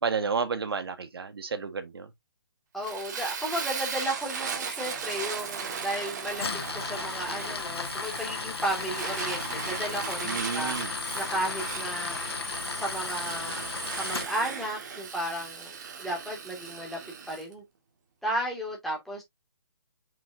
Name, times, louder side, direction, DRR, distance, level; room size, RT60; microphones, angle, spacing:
voice 1, 0.0-2.1 10.2-10.9, right 5 dB, 75° right, 1.7 m, -31 dB
voice 2, 2.7-6.5 6.7-13.6 13.9-17.6 18.2-19.2, right 1 dB, ahead, 2.3 m, -34 dB
Fire, 2.8-17.4, right 6 dB, 45° right, 1.8 m, -37 dB
Tools, 6.3-14.3, left 4 dB, 85° left, 1.7 m, -35 dB
6.1 x 5.8 x 2.7 m
hypercardioid pair, 165°, 13 cm